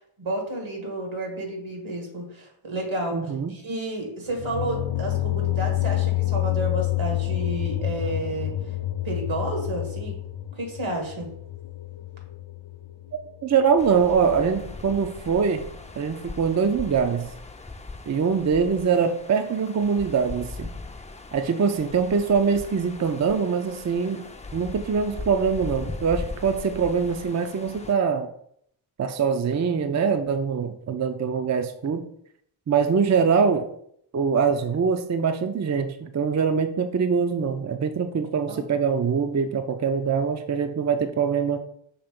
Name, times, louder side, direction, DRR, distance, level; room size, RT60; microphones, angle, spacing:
voice 1, 0.2-8.5 9.0-10.2 10.6-11.3 38.5-38.6, right 1 dB, 80° right, 2 dB, 1.8 m, -31 dB
voice 2, 3.1-3.5 13.4-15.6 16.0-17.3 18.1-20.7 21.3-24.2 24.5-28.3 29.0-32.0 32.7-33.7 34.1-41.6, right 6 dB, 35° right, 7 dB, 0.5 m, -23 dB
sound 1, 4.3-13.2, left 16 dB, 60° left, 0.6 m, -28 dB
sound 2, 13.8-27.9, left 3 dB, 15° left, 0.5 m, -39 dB
5.8 x 3.3 x 5.2 m, 0.69 s
wide cardioid pair, 80°, 47 cm